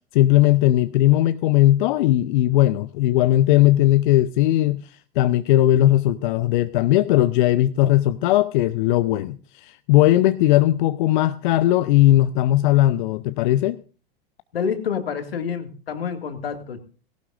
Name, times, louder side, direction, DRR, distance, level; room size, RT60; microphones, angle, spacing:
voice 1, 0.1-13.8, left 14 dB, 55° left, 13 dB, 0.7 m, -18 dB
voice 2, 14.5-16.8, left 7 dB, 75° left, 8 dB, 2.2 m, -28 dB
18.0 x 17.0 x 2.5 m, 0.36 s
figure-of-eight pair, 90°, 30 cm